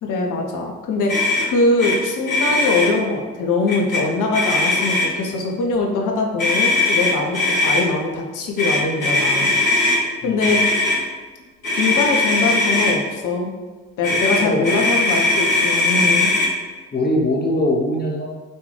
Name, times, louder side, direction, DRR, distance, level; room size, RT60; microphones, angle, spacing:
voice 1, 0.0-9.5 10.2-10.6 11.8-13.5 14.0-16.3, left 3 dB, 50° left, 1 dB, 0.9 m, -22 dB
Motor vehicle (road), 1.1-1.5 1.8-2.0 2.2-2.9 3.7-4.0 4.3-5.2 6.4-7.8 8.6-10.0 10.4-11.0 11.6-12.9 14.0-16.5, left 2 dB, 90° left, 1.3 m, -19 dB
voice 2, 10.2-10.6 14.4-14.7 16.9-18.3, left 1 dB, 25° left, -1 dB, 0.8 m, -22 dB
6.3 x 2.6 x 3.2 m, 1.3 s
figure-of-eight pair, 50°, 40 cm